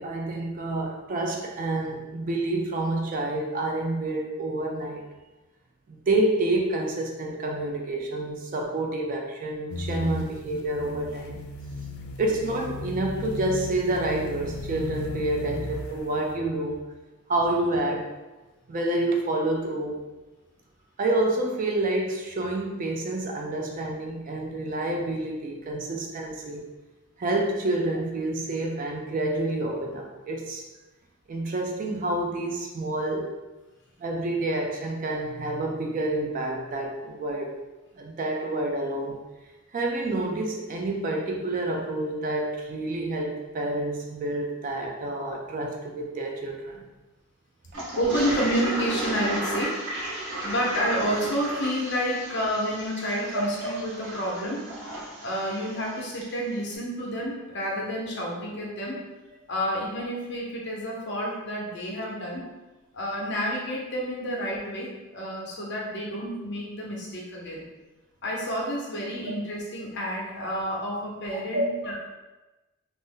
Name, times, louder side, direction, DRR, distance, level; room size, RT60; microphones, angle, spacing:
voice 1, 0.0-5.0 5.9-11.4 12.2-16.8 17.3-18.1 18.7-20.0 21.0-26.6 27.2-30.6 31.3-33.3 34.0-37.5 38.0-39.2 39.7-46.8 53.3-53.4 71.5-71.7, right 2 dB, 35° right, 0 dB, 0.3 m, -28 dB
sound 1, 9.7-16.2, left 2 dB, 70° left, 0.3 m, -35 dB
Toilet flush, 47.7-56.3, right 1 dB, 55° right, 0.8 m, -34 dB
voice 2, 48.0-49.8 50.4-54.7 55.2-59.0 59.5-62.5 62.9-67.6 68.2-72.0, equal, 50° left, -2 dB, 0.7 m, -29 dB
2.6 x 2.0 x 3.6 m, 1.1 s
head